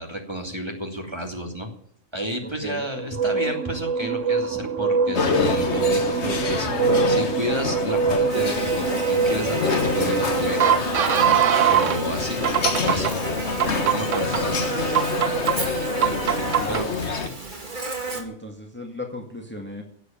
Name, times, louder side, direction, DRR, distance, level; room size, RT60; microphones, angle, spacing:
voice 1, 0.0-1.7 2.1-10.8 11.7-12.4 12.8-13.2 13.8-14.8 16.0-16.2 16.7-17.4, equal, 20° right, 2 dB, 2.7 m, -31 dB
voice 2, 2.4-2.8 16.0-17.0 18.1-19.8, left 1 dB, 10° left, 2 dB, 2.1 m, -37 dB
sound 1, 3.0-12.0 12.4-13.1 13.6-14.4 14.9-15.5 16.0-16.8, right 7 dB, 85° right, 1.2 m, -23 dB
sound 2, 5.1-17.3, left 4 dB, 65° left, 1.7 m, -27 dB
Buzz, 8.3-18.2, right 3 dB, 40° right, 2.3 m, -31 dB
16.5 x 8.3 x 9.0 m, 0.65 s
omnidirectional pair, 1.2 m